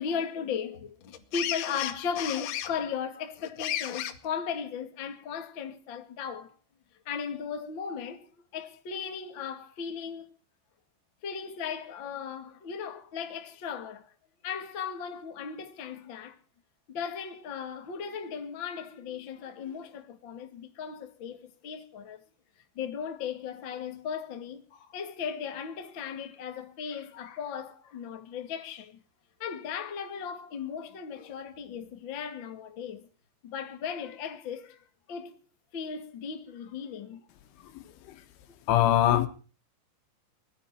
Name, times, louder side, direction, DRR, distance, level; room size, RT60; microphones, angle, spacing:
voice 1, 0.0-6.5 7.0-10.3 11.2-14.1 14.4-16.4 16.9-22.2 22.7-29.0 29.4-33.1 33.4-35.4 35.7-37.2 37.6-37.7, left 7 dB, 45° left, 1.5 m, -36 dB
voice 2, 37.8-38.2 38.7-39.3, left 12 dB, 75° left, 4.0 m, -23 dB
20.0 x 14.5 x 4.4 m
omnidirectional pair, 5.7 m